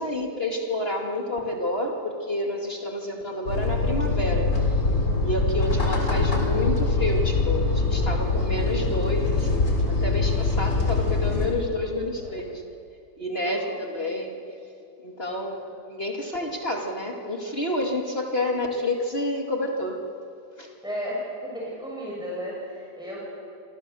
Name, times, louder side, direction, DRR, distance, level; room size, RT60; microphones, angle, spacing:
voice 1, 0.0-4.5 5.2-12.5 13.2-14.4 15.0-20.0 20.6-20.7, left 1 dB, 35° left, 0 dB, 2.5 m, -29 dB
sound 1, 3.5-11.5, left 3 dB, 75° left, 4.8 m, -23 dB
voice 2, 13.3-13.7 14.0-14.1 15.3-15.7 20.8-23.2, equal, ahead, -5 dB, 6.4 m, -35 dB
28.0 x 25.5 x 7.0 m, 2.5 s
omnidirectional pair, 1.8 m